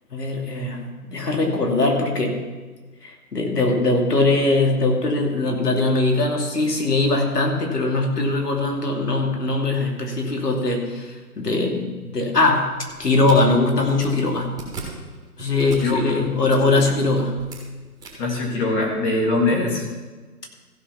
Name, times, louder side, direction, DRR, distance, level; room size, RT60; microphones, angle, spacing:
voice 1, 0.1-2.4 3.0-12.7 13.0-14.5 15.4-17.3, left 2 dB, 80° left, 1 dB, 2.8 m, -21 dB
sound 1, 12.6-19.1, right 3 dB, 10° right, 1.8 m, -41 dB
voice 2, 15.8-16.3 18.2-19.9, left 2 dB, 20° left, -1 dB, 1.7 m, -22 dB
15.5 x 5.6 x 5.8 m, 1.3 s
figure-of-eight pair, 140°, 47 cm